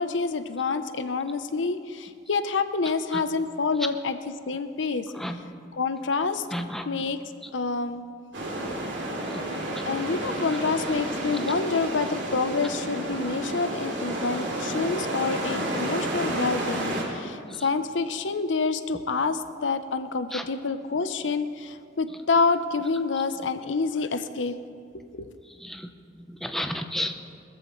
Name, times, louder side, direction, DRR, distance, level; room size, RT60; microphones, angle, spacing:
voice 1, 0.0-4.2 4.5-5.1 5.7-6.4 6.9-7.2 7.5-8.0 9.9-24.6 25.1-25.3, left 4 dB, 90° left, 11 dB, 0.7 m, -27 dB
voice 2, 6.5-6.9 9.3-9.4 20.3-20.4 25.6-25.9 26.3-27.2, equal, ahead, 5 dB, 0.7 m, -31 dB
sound 1, 8.3-17.0, right 1 dB, 75° right, 2.6 m, -31 dB
20.5 x 14.0 x 3.2 m, 2.4 s
head